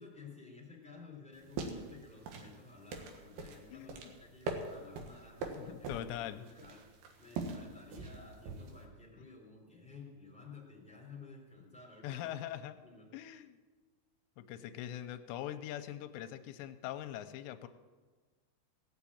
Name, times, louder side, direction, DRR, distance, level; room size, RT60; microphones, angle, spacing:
voice 1, 0.0-12.4 12.8-13.1, left 4 dB, ahead, -3 dB, 3.0 m, -54 dB
sound 1, 1.3-8.8, right 3 dB, 70° right, 3.2 m, -43 dB
voice 2, 3.7-4.0 5.6-6.5 12.0-12.8 13.1-13.6 14.4-17.7, left 12 dB, 90° left, 9 dB, 2.9 m, -42 dB
17.5 x 7.2 x 8.7 m, 1.4 s
omnidirectional pair, 5.0 m